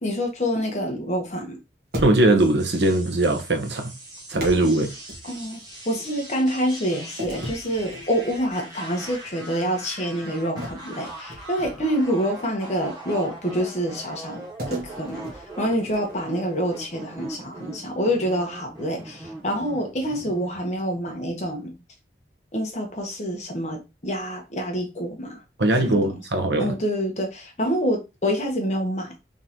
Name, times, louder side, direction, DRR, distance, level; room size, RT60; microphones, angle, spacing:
voice 1, 0.0-1.6 5.2-21.8 22.5-25.4 25.8-26.2 26.6-29.1, equal, 40° left, 1.1 m, -27 dB
sound 1, 1.9-2.6 4.3-5.7 7.2-8.5 9.0-9.2 10.6-12.1 14.6-16.2, equal, 55° right, 1.5 m, -35 dB
voice 2, 2.0-3.9 4.3-4.9 25.6-26.7, right 2 dB, 75° right, 0.9 m, -20 dB
sound 2, 2.4-20.8, right 2 dB, 20° right, 1.6 m, -41 dB
3.9 x 3.7 x 3.0 m
head